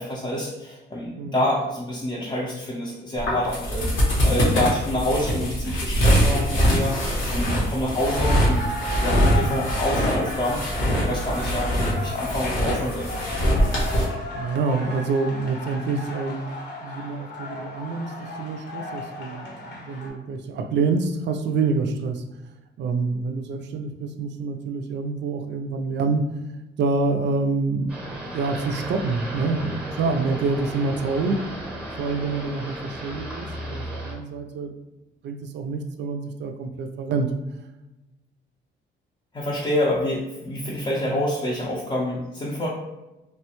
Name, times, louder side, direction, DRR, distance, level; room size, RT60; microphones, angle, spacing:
voice 1, 0.0-8.7 9.0-13.1 39.3-42.7, left 1 dB, 25° left, -5 dB, 0.5 m, -27 dB
sound 1, 3.2-14.0, equal, 85° left, 1.1 m, -23 dB
sound 2, 7.9-20.1, left 2 dB, 60° left, 0.9 m, -35 dB
voice 2, 14.3-16.5 16.8-22.2 22.8-26.3 26.8-27.9 28.3-31.4 32.0-34.7 35.2-37.3 41.1-41.2, right 4 dB, 65° right, 6 dB, 0.4 m, -27 dB
sound 3, 27.9-34.1, right 1 dB, 5° right, 0.8 m, -35 dB
3.2 x 2.1 x 2.9 m, 1.0 s
cardioid pair, 90°, 20 cm